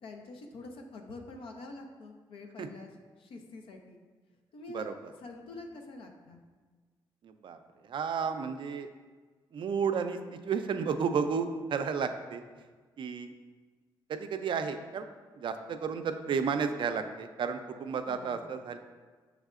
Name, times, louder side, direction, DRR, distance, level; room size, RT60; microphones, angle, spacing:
voice 1, 0.0-2.9 3.2-4.0 4.5-4.9 5.2-6.4 18.1-18.6, left 3 dB, 80° left, 3 dB, 0.7 m, -46 dB
voice 2, 7.2-8.9 9.5-12.4 13.0-13.3 14.1-15.1 15.4-18.8, right 6 dB, 65° right, 8 dB, 0.4 m, -32 dB
6.3 x 3.4 x 2.4 m, 1.4 s
cardioid pair, 65°, 9 cm